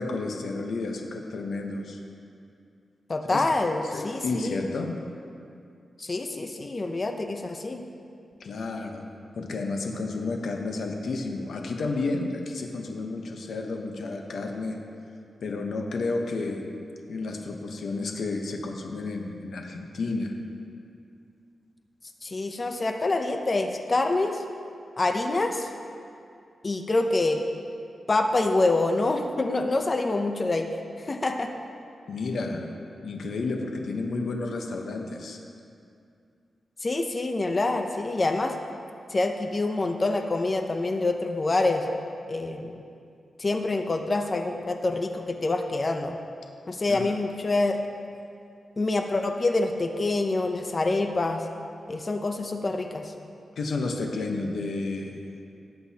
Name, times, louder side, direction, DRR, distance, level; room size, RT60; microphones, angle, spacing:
voice 1, 0.0-2.0 3.3-5.0 8.4-9.0 9.4-14.8 15.4-16.6 17.1-20.3 32.1-32.7 33.0-35.4 46.8-47.1 53.6-55.3, left 3 dB, 75° left, 2 dB, 0.9 m, -31 dB
voice 2, 3.1-4.6 6.0-7.8 22.2-24.4 25.0-25.7 26.6-27.4 28.1-30.7 31.0-31.5 36.8-38.5 39.1-41.8 42.3-42.8 43.4-46.2 46.7-47.8 48.8-51.4 51.9-53.1, left 2 dB, 35° left, 5 dB, 0.6 m, -26 dB
17.5 x 7.8 x 2.9 m, 2.5 s
wide cardioid pair, 105°, 0 cm